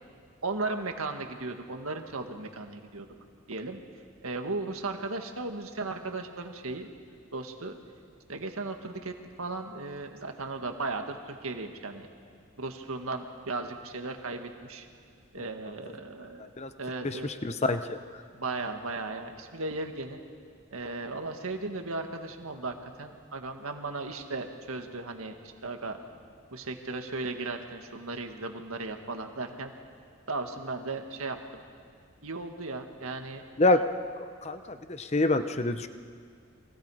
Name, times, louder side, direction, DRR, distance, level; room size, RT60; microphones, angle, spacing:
voice 1, 0.4-3.1 3.5-3.8 4.2-6.9 7.3-7.8 8.3-12.1 12.6-14.9 15.3-16.5 16.8-17.3 18.3-20.2 20.7-25.3 25.6-26.0 26.5-29.7 30.3-31.6 32.2-33.4, right 3 dB, 85° right, 5 dB, 1.8 m, -36 dB
voice 2, 17.0-18.0 33.6-33.8 34.2-35.9, left 2 dB, 30° left, 10 dB, 0.8 m, -27 dB
30.0 x 23.0 x 5.0 m, 2.2 s
head